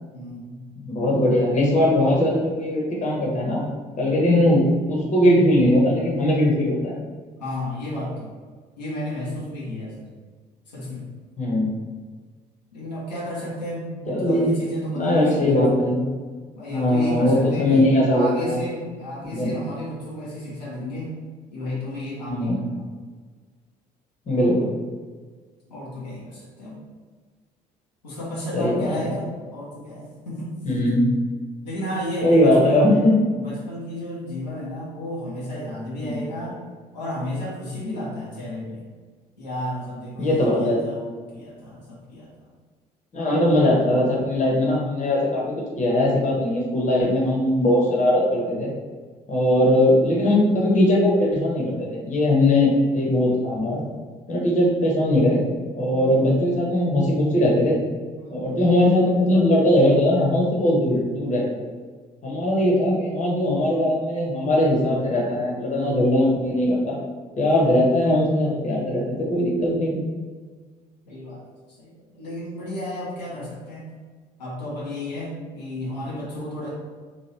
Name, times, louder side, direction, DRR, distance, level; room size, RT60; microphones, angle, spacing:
voice 1, 0.1-0.6 7.4-8.3 8.8-10.1 10.7-11.1 12.7-15.7 16.5-21.1 21.5-22.9 25.7-26.8 28.0-30.5 31.6-32.8 33.3-36.6 36.9-38.8 39.4-42.5 58.1-58.4 71.0-71.4 71.8-73.9 74.4-76.7, equal, 80° left, -7 dB, 0.8 m, -32 dB
voice 2, 0.8-3.6 4.0-6.9 11.4-11.7 14.1-14.5 14.9-16.0 16.7-18.6 19.3-19.5 22.3-22.6 24.3-24.6 28.5-28.9 30.6-31.0 32.2-33.2 36.0-36.2 40.2-40.8 43.1-48.7 49.3-53.8 54.3-55.4 55.8-57.7 58.3-61.4 62.2-67.0 67.4-70.0, left 1 dB, 35° left, -3 dB, 1.0 m, -20 dB
2.9 x 2.5 x 3.2 m, 1.5 s
figure-of-eight pair, 50°, 21 cm